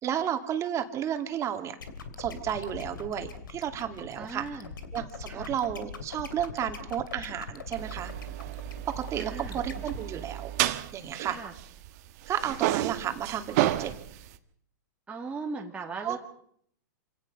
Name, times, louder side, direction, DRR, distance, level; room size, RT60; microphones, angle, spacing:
voice 1, 0.0-1.8 2.2-4.6 4.9-8.1 8.9-10.5 10.9-11.4 12.3-13.9 16.0-16.2, right 10 dB, 30° right, 6 dB, 2.5 m, -32 dB
sound 1, 1.8-10.0, left 6 dB, 90° left, 2.9 m, -41 dB
voice 2, 4.2-4.7 5.3-5.5 9.2-9.6 11.3-11.5 15.1-16.2, right 4 dB, 10° right, -1 dB, 2.1 m, -38 dB
sound 2, 7.8-12.0 12.3-14.4, right 15 dB, 55° right, 1.5 m, -31 dB
27.5 x 17.5 x 5.5 m, 0.67 s
hypercardioid pair, 125°, 11 cm